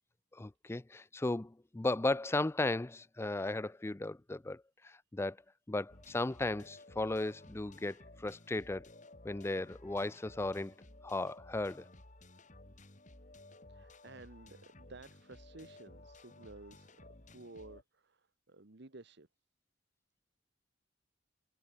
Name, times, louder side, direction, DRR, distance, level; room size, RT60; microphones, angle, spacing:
voice 1, 0.3-5.4 5.7-8.9 9.2-10.8 11.0-11.9, left 2 dB, 15° left, 0.4 m, -36 dB
sound 1, 5.9-17.8, left 2 dB, 40° left, 3.1 m, -56 dB
voice 2, 13.7-19.3, right 2 dB, 60° right, 1.5 m, -54 dB
head